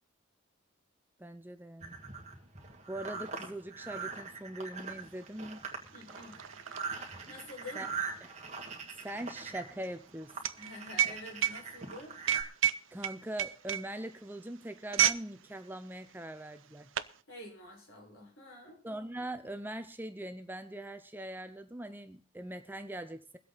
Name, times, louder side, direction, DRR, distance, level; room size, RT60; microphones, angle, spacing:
voice 1, 1.2-2.0 2.9-5.7 7.7-7.9 9.0-10.3 12.9-16.9 18.8-23.4, right 1 dB, 10° right, 10 dB, 0.6 m, -42 dB
sound 1, 1.8-12.4, right 5 dB, 30° right, 2.2 m, -42 dB
sound 2, 5.0-5.1 5.3-15.3 15.6-15.9 16.5-17.2, right 10 dB, 65° right, 0.6 m, -33 dB
voice 2, 5.9-6.4 7.2-7.8 10.6-12.1 17.3-18.8, left 2 dB, 70° left, 0 dB, 5.4 m, -47 dB
22.0 x 8.2 x 4.1 m, 0.38 s
head